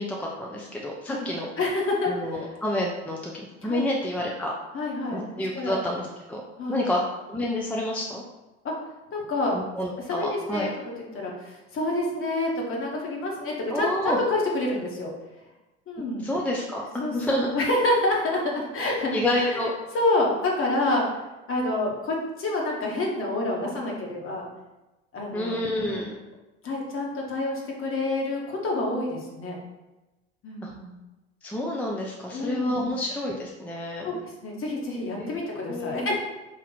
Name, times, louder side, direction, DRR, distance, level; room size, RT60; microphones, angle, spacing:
voice 1, 0.0-1.5 2.1-4.5 5.1-6.4 6.7-7.0 7.3-8.2 9.5-10.7 13.7-14.2 16.2-17.5 19.1-19.7 25.3-26.1 30.6-30.7 31.4-34.2 35.2-35.3 35.7-36.1, left 1 dB, 5° left, -2 dB, 0.6 m, -29 dB
voice 2, 1.6-2.5 3.6-3.9 4.7-5.2 5.5-5.8 6.6-6.9 8.6-8.7 9.1-9.5 10.1-10.7 11.1-15.1 15.9-16.3 17.0-19.6 19.9-21.0 21.5-24.5 25.1-26.0 26.6-29.5 30.4-30.9 32.3-32.9 34.0-34.2 34.4-36.2, left 2 dB, 40° left, -2 dB, 1.4 m, -28 dB
4.5 x 2.9 x 4.0 m, 1.1 s
hypercardioid pair, 70°, 34 cm